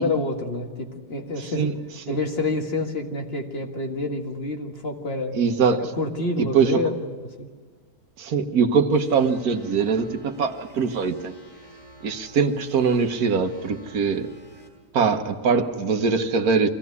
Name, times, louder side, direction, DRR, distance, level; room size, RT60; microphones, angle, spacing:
voice 1, 0.0-1.7 2.1-5.4 5.9-7.5, left 2 dB, 45° left, 2 dB, 1.9 m, -28 dB
voice 2, 1.4-1.7 2.1-2.2 5.3-5.8 6.4-6.9 8.2-11.3 12.0-14.3 14.9-16.7, right 5 dB, 80° right, 7 dB, 1.6 m, -22 dB
sound 1, 8.9-14.7, right 1 dB, 80° left, 5.4 m, -49 dB
24.0 x 16.0 x 9.5 m, 1.5 s
omnidirectional pair, 1.6 m